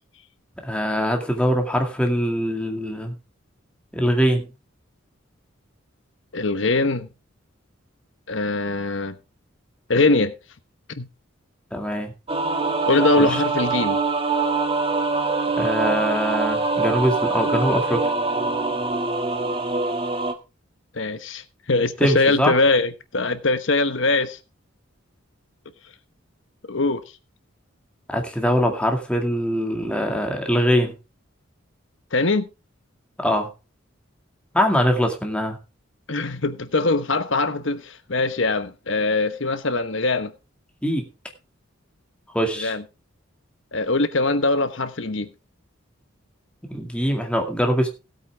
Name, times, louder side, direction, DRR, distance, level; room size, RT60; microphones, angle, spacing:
voice 1, 0.6-3.1 3.9-4.5 11.7-12.1 13.2-13.4 15.6-18.0 22.0-22.5 28.1-30.9 33.2-33.5 34.5-35.6 40.8-41.1 42.3-42.7 46.7-47.9, equal, 5° left, 2.1 m, -22 dB
voice 2, 6.3-7.1 8.3-9.2 9.9-10.3 11.0-11.1 12.9-14.0 20.9-24.4 26.7-27.0 32.1-32.5 36.1-40.3 42.6-42.8 43.7-45.3, left 3 dB, 65° left, 1.1 m, -22 dB
sound 1, 12.3-20.3, right 3 dB, 25° right, 1.3 m, -24 dB
17.0 x 8.3 x 3.5 m
head